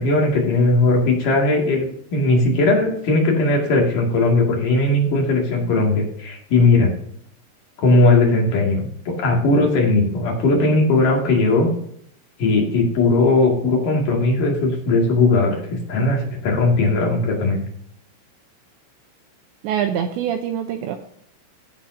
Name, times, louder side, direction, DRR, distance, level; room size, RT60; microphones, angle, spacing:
voice 1, 0.0-1.9 2.1-6.9 7.8-11.7 12.4-15.6 15.9-17.6, left 2 dB, 50° left, -1 dB, 3.0 m, -18 dB
voice 2, 19.6-21.0, right 9 dB, 85° right, 5 dB, 2.6 m, -24 dB
15.5 x 7.4 x 2.7 m, 0.68 s
omnidirectional pair, 5.9 m